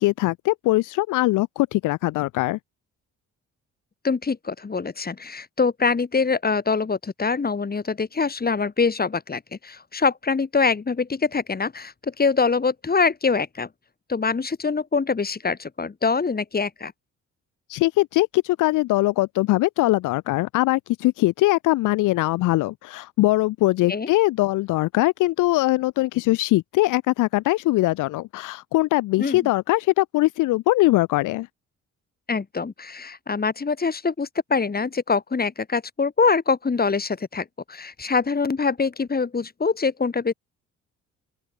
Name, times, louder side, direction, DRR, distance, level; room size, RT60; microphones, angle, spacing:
voice 1, 0.0-2.6 17.7-31.5, left 18 dB, 90° left, 0.8 m, -21 dB
voice 2, 4.0-13.7 14.1-16.9 23.9-24.1 29.2-29.5 32.3-40.3, left 4 dB, 30° left, 4.8 m, -24 dB
open air
cardioid pair, 90°, 30 cm